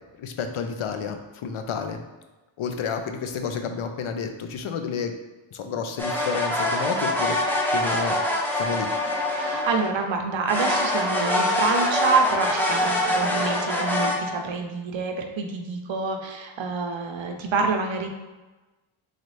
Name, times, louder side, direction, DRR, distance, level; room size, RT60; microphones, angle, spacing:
voice 1, 0.2-2.0 2.6-5.1 5.5-7.4 7.7-8.2 8.5-8.9, left 6 dB, 90° left, 6 dB, 0.6 m, -30 dB
sound 1, 6.0-10.1 10.5-14.2, left 1 dB, 5° left, 0.4 m, -24 dB
voice 2, 9.3-18.1, right 4 dB, 70° right, 4 dB, 0.7 m, -27 dB
4.0 x 3.2 x 3.1 m, 1.2 s
wide cardioid pair, 160°, 48 cm